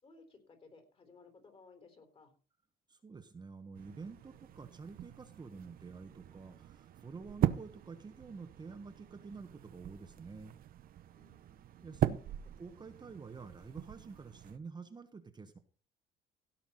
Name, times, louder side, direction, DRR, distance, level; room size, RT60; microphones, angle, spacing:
voice 1, 0.0-2.3 11.1-12.0, left 4 dB, 35° left, 6 dB, 3.8 m, -60 dB
voice 2, 2.9-10.6 11.8-12.2 12.6-15.6, right 4 dB, 25° right, 6 dB, 1.4 m, -49 dB
sound 1, 3.7-14.6, right 12 dB, 60° right, 0.8 m, -40 dB
16.5 x 5.9 x 5.7 m, 0.38 s
cardioid pair, 110°, 17 cm